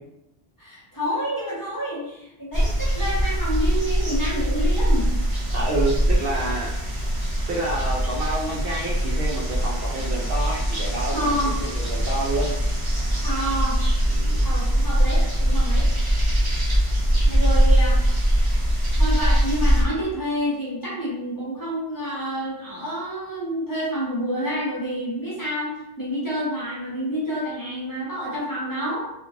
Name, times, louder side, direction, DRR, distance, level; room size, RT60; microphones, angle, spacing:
voice 1, 0.6-5.1 11.1-11.5 13.2-13.8 14.4-15.9 17.2-18.0 18.9-29.0, equal, 20° left, -8 dB, 1.0 m, -28 dB
sound 1, 2.5-19.8, equal, 25° right, 0.7 m, -22 dB
voice 2, 5.5-6.8 7.5-12.5 14.1-14.5, right 2 dB, 65° right, -3 dB, 0.7 m, -28 dB
3.0 x 2.4 x 2.5 m, 0.85 s
omnidirectional pair, 1.1 m